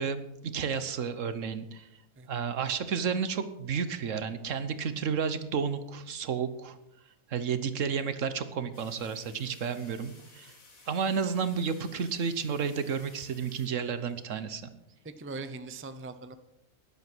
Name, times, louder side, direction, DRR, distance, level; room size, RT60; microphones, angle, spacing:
voice 1, 0.0-1.9 2.3-6.8 7.3-10.5 10.9-14.7, right 6 dB, 65° right, 12 dB, 1.3 m, -31 dB
sound 1, 8.7-14.2, left 3 dB, 85° left, 2.8 m, -56 dB
voice 2, 15.0-16.4, right 3 dB, 15° right, 10 dB, 0.5 m, -40 dB
12.5 x 11.0 x 6.1 m, 0.86 s
omnidirectional pair, 1.4 m